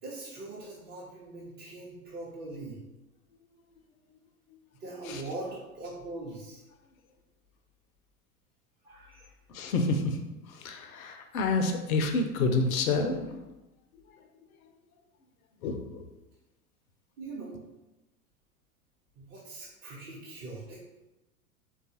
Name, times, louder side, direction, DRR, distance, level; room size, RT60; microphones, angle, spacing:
voice 1, 0.0-2.8 4.8-6.6 8.8-9.3 17.2-17.6 19.2-20.8, right 2 dB, 30° right, -7 dB, 0.7 m, -41 dB
voice 2, 9.5-13.4 14.1-14.3 14.6-14.7 15.6-16.1, left 3 dB, 70° left, 5 dB, 0.6 m, -29 dB
3.7 x 2.3 x 2.7 m, 1.0 s
figure-of-eight pair, 85°, 45 cm